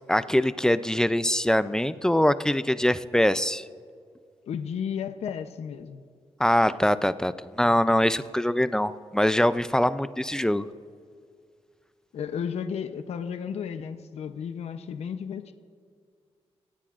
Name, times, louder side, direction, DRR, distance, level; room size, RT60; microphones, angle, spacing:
voice 1, 0.1-3.6 6.4-10.7, left 1 dB, 5° left, 13 dB, 0.4 m, -23 dB
voice 2, 4.4-6.0 12.1-15.5, left 7 dB, 80° left, 9 dB, 0.7 m, -33 dB
27.0 x 16.0 x 2.5 m, 2.2 s
wide cardioid pair, 135°, 11 cm